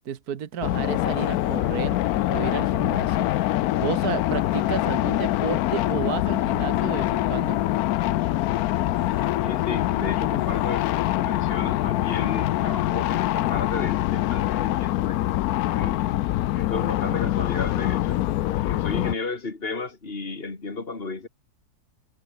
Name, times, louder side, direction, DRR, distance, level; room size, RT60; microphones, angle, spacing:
voice 1, 0.1-2.0 2.3-3.3 3.8-7.6, right 8 dB, 70° right, 1.8 m, -32 dB
sound 1, 0.6-19.1, left 15 dB, 75° left, 1.0 m, -24 dB
voice 2, 9.4-15.3 15.7-16.0 16.5-18.2 18.6-21.3, left 3 dB, 35° left, 3.2 m, -33 dB
omnidirectional pair, 1.7 m